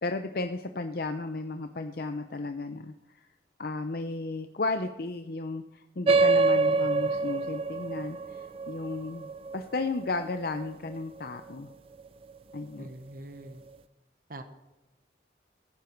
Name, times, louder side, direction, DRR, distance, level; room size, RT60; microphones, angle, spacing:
voice 1, 0.0-3.3 3.6-11.7 12.5-12.9, left 3 dB, 55° left, 8 dB, 0.7 m, -34 dB
sound 1, 6.1-11.0, right 3 dB, 30° right, 0.4 m, -26 dB
voice 2, 6.6-7.1 12.8-13.6 14.3-14.4, right 1 dB, 50° right, 8 dB, 1.2 m, -44 dB
15.5 x 14.5 x 4.6 m, 1.0 s
head